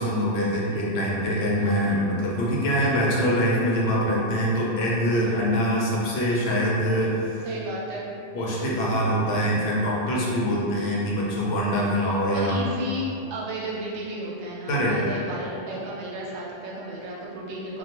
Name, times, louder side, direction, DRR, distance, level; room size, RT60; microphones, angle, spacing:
voice 1, 0.0-7.5 8.3-12.7 14.7-15.0, equal, 70° left, -5 dB, 0.8 m, -24 dB
voice 2, 7.4-8.1 8.7-9.1 12.3-17.8, right 1 dB, 80° right, -5 dB, 0.9 m, -34 dB
2.3 x 2.1 x 2.8 m, 2.6 s
omnidirectional pair, 1.1 m